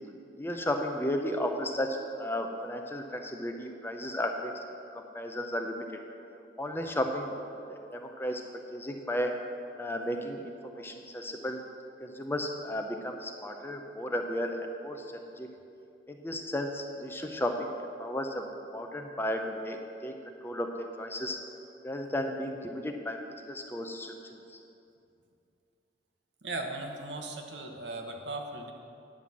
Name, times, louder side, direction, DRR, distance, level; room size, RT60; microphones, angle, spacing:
voice 1, 0.4-5.9 6.6-7.4 7.7-8.4 8.7-9.3 9.8-11.6 12.0-15.1 15.4-15.5 16.1-18.5 18.7-21.4 21.8-23.2 23.5-24.6, left 1 dB, 10° left, 3 dB, 0.6 m, -34 dB
voice 2, 26.4-28.7, right 2 dB, 75° right, 3 dB, 1.1 m, -37 dB
10.0 x 5.6 x 7.5 m, 2.6 s
head